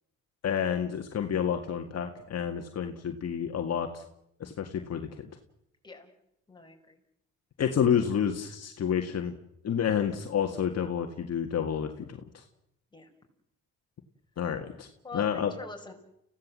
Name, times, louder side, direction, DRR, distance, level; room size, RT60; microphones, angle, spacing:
voice 1, 0.4-4.0 4.4-5.3 7.6-9.3 9.6-12.4 14.4-14.9 15.1-15.5, left 8 dB, 55° left, 5 dB, 2.0 m, -29 dB
voice 2, 6.5-7.0 12.9-13.1 15.0-15.9, left 3 dB, 15° left, 3 dB, 5.3 m, -43 dB
29.5 x 16.5 x 7.6 m, 0.79 s
cardioid pair, 90°, 30 cm